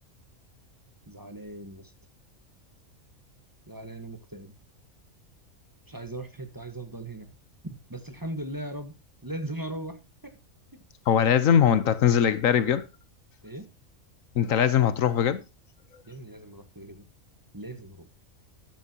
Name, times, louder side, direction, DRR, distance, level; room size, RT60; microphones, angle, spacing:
voice 1, 1.1-1.9 3.7-4.5 5.9-7.3 7.6-8.9 9.2-10.4 10.7-10.8 13.4-13.7 16.0-17.0 17.5-18.1, right 1 dB, 15° right, 1.2 m, -38 dB
voice 2, 11.1-12.8 14.3-15.4, left 8 dB, 75° left, 1.2 m, -21 dB
13.0 x 10.5 x 2.8 m
omnidirectional pair, 1.4 m